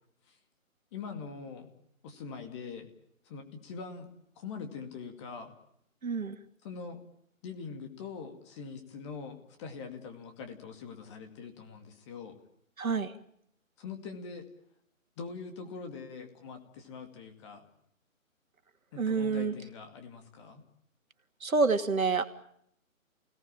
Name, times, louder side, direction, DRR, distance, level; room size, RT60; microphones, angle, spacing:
voice 1, 0.9-1.7 2.0-2.9 3.2-4.1 4.4-5.5 6.6-7.0 7.4-12.4 13.8-14.4 15.2-17.7 18.9-20.6, left 5 dB, 20° left, 6 dB, 2.4 m, -43 dB
voice 2, 6.0-6.4 12.8-13.1 19.0-19.5 21.4-22.2, right 4 dB, 75° right, 7 dB, 2.6 m, -27 dB
29.0 x 18.0 x 8.9 m, 0.73 s
figure-of-eight pair, 155°, 42 cm